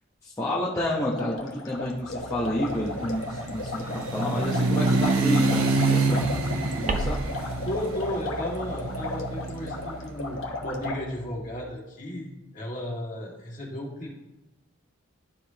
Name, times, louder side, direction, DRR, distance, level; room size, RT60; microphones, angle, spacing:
voice 1, 0.2-6.3 6.8-7.2, left 1 dB, 15° left, -7 dB, 0.8 m, -30 dB
sound 1, 1.1-11.0, left 2 dB, 60° left, 1.0 m, -35 dB
sound 2, 2.2-10.2, right 3 dB, 75° right, 0.8 m, -27 dB
sound 3, 6.9-11.7, right 2 dB, 35° right, 0.5 m, -37 dB
voice 2, 7.7-14.1, left 1 dB, 35° left, -4 dB, 2.0 m, -34 dB
12.0 x 4.9 x 2.8 m, 1.0 s
head